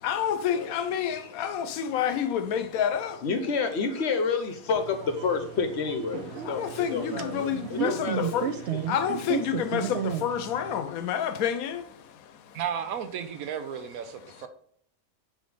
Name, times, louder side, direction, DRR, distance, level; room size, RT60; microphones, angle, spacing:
voice 1, 0.0-3.2 6.4-12.6 14.3-14.5, left 8 dB, 85° left, 1.1 m, -29 dB
voice 2, 3.2-8.8, left 5 dB, 55° left, 0.9 m, -29 dB
sound 1, 4.7-10.8, right 8 dB, 65° right, 0.7 m, -34 dB
voice 3, 12.5-14.5, right 8 dB, 80° right, 1.1 m, -33 dB
4.8 x 4.0 x 5.2 m
omnidirectional pair, 1.5 m